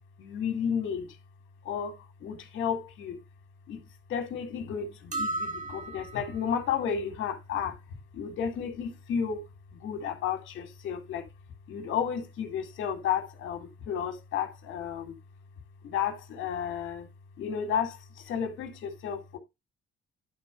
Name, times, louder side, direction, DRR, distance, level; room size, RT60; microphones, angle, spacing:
voice 1, 0.2-1.2 1.6-3.2 3.7-3.8 4.1-7.8 8.1-9.4 9.8-11.2 11.7-15.2 15.8-17.1 17.4-19.4, left 7 dB, 80° left, 2.3 m, -32 dB
sound 1, 5.1-6.5, right 2 dB, 40° right, 1.6 m, -34 dB
11.0 x 3.8 x 5.2 m
cardioid pair, 90°, 20 cm